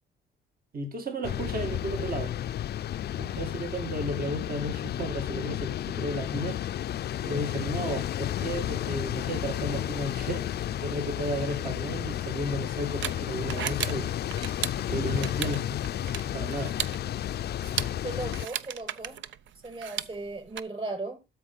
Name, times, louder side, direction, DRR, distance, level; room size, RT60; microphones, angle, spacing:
voice 1, 0.7-2.3 3.2-6.8 7.2-10.5 10.8-14.1 14.9-15.8 16.3-16.8, right 1 dB, 45° right, 2.1 m, -33 dB
sound 1, 1.2-18.5, left 11 dB, 55° left, 0.5 m, -32 dB
sound 2, 11.9-20.6, right 10 dB, 70° right, 0.7 m, -37 dB
voice 2, 18.0-19.2 19.6-21.2, right 2 dB, 30° right, 6.2 m, -36 dB
13.0 x 4.8 x 5.4 m
cardioid pair, 90°, 20 cm